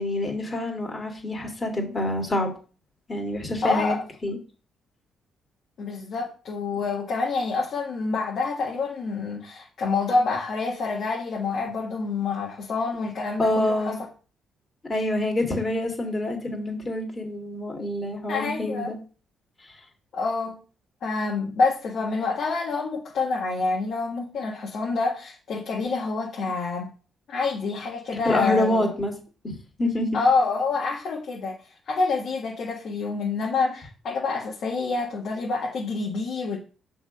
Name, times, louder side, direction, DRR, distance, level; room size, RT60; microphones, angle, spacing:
voice 1, 0.0-2.5 3.1-4.0 4.2-4.4 13.4-14.0 14.8-19.0 28.2-29.1 29.4-30.1, left 1 dB, 25° left, 2.4 m, -26 dB
voice 2, 3.6-4.0 5.8-13.9 18.3-18.9 20.1-20.6 21.0-26.9 27.3-28.9 30.1-31.6 31.9-36.6, left 4 dB, 60° left, 1.5 m, -27 dB
6.3 x 3.7 x 5.2 m
cardioid pair, 90°, 0 cm